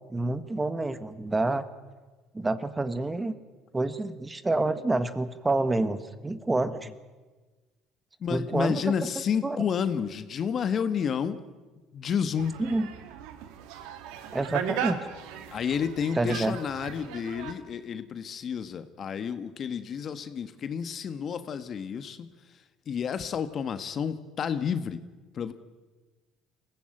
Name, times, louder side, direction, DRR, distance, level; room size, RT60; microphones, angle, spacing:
voice 1, 0.1-1.6 2.3-3.3 3.7-6.9 8.3-8.9 9.4-9.6 12.6-12.9 14.3-15.0 16.2-16.6, right 2 dB, 15° right, 12 dB, 1.5 m, -28 dB
voice 2, 8.2-11.4 11.9-12.6 15.5-22.3 22.9-25.0 25.3-25.5, left 7 dB, 45° left, 11 dB, 1.4 m, -30 dB
sound 1, 12.4-17.5, right 8 dB, 80° right, 1.9 m, -37 dB
23.0 x 16.0 x 9.0 m, 1.3 s
supercardioid pair, 80°, 0 cm